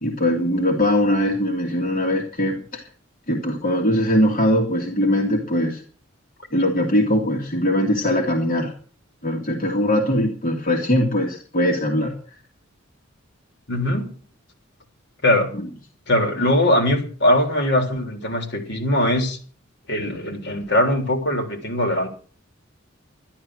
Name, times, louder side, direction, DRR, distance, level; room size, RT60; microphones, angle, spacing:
voice 1, 0.0-2.8 3.3-5.8 6.5-8.7 9.2-12.1 15.5-15.6, left 1 dB, 45° left, 0 dB, 2.3 m, -21 dB
voice 2, 13.7-14.1 15.2-15.5 16.1-19.4 19.9-22.1, left 1 dB, 60° left, 4 dB, 3.6 m, -21 dB
13.0 x 11.5 x 6.3 m, 0.43 s
head